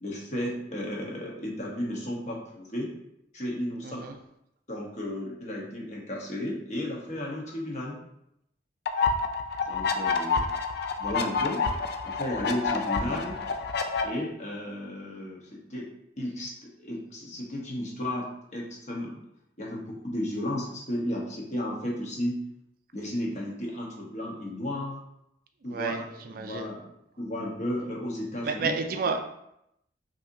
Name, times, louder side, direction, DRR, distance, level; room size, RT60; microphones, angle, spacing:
voice 1, 0.0-2.9 3.3-4.1 4.7-8.0 9.6-10.4 11.0-11.6 12.0-13.4 14.0-15.9 16.2-16.5 16.8-19.2 19.6-22.4 22.9-25.0 25.6-26.0 26.4-26.9 27.2-28.8, left 1 dB, 40° left, -3 dB, 1.0 m, -33 dB
voice 2, 3.8-4.1 25.7-26.7 28.4-29.2, right 4 dB, 50° right, 5 dB, 0.4 m, -31 dB
sound 1, 8.9-14.0, left 4 dB, 60° left, 0.4 m, -28 dB
5.6 x 2.8 x 2.6 m, 0.78 s
head